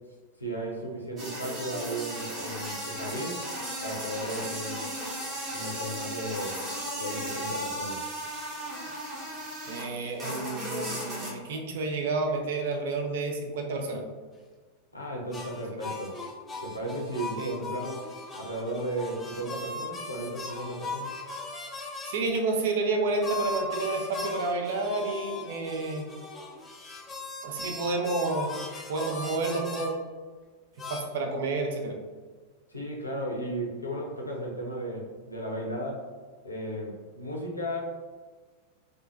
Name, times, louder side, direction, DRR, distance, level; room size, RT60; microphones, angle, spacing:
voice 1, 0.4-3.4 3.8-4.9 5.5-6.7 7.0-8.0 14.9-16.2 16.6-18.1 18.4-21.1 32.7-36.1 36.4-37.8, right 1 dB, 85° left, -2 dB, 0.6 m, -35 dB
sound 1, 1.2-9.9 10.2-11.3, right 1 dB, 25° right, 0.8 m, -35 dB
voice 2, 9.7-14.0 17.4-17.5 22.1-26.1 27.4-28.5 28.9-29.9 30.9-32.0, right 3 dB, 55° right, 3 dB, 0.4 m, -30 dB
sound 2, 15.3-22.2 23.2-29.9 30.8-31.0, left 3 dB, 15° left, 0.4 m, -38 dB
2.7 x 2.4 x 2.4 m, 1.4 s
figure-of-eight pair, 90°, 0 cm